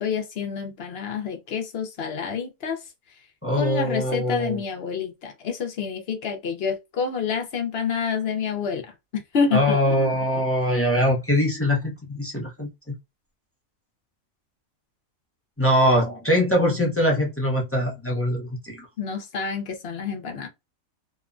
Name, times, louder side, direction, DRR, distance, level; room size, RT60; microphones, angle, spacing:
voice 1, 0.0-2.8 3.5-9.8 10.1-10.4 19.0-20.5, left 6 dB, 55° left, 0.8 m, -28 dB
voice 2, 3.4-4.6 9.5-12.9 15.6-18.8, equal, 15° left, 0.5 m, -22 dB
2.9 x 2.1 x 2.4 m
omnidirectional pair, 1.4 m